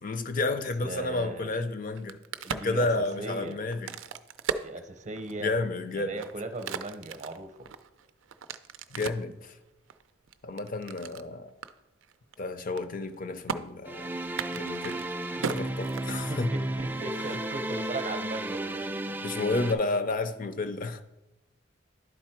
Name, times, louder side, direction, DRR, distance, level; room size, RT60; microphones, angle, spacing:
voice 1, 0.0-2.2 2.5-3.9 5.4-6.2 8.9-9.6 10.4-11.5 12.4-14.1 14.5-15.1 15.5-16.5 17.3-17.4 19.2-21.0, left 2 dB, 45° left, 10 dB, 0.6 m, -31 dB
voice 2, 0.8-1.5 2.4-3.6 4.6-5.6 5.9-7.7 16.1-19.2, right 2 dB, 40° right, 8 dB, 0.7 m, -38 dB
Crack, 1.8-5.5 6.0-9.3 9.9-11.3 11.6-11.7 12.0-12.3 12.6-13.1 13.5-13.6 14.3-16.5, right 6 dB, 90° right, 0.4 m, -37 dB
sound 1, 13.9-19.7, right 1 dB, 10° right, 0.4 m, -33 dB
11.0 x 4.2 x 4.4 m, 0.94 s
head